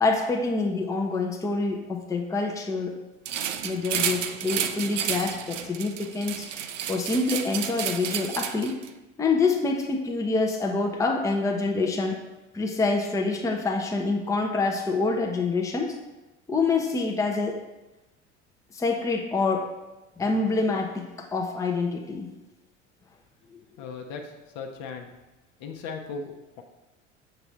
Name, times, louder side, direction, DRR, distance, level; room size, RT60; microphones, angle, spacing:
voice 1, 0.0-3.0 3.6-6.5 6.9-8.8 9.2-12.2 12.5-16.0 16.5-17.6 18.7-19.7 20.2-22.3 23.5-23.6, left 3 dB, 10° left, 2 dB, 0.7 m, -26 dB
sound 1, 3.3-8.9, right 9 dB, 75° right, 0.5 m, -31 dB
voice 2, 23.8-25.1 25.6-26.6, left 4 dB, 50° left, 4 dB, 0.9 m, -37 dB
6.9 x 4.0 x 4.5 m, 1.1 s
figure-of-eight pair, 70°, 37 cm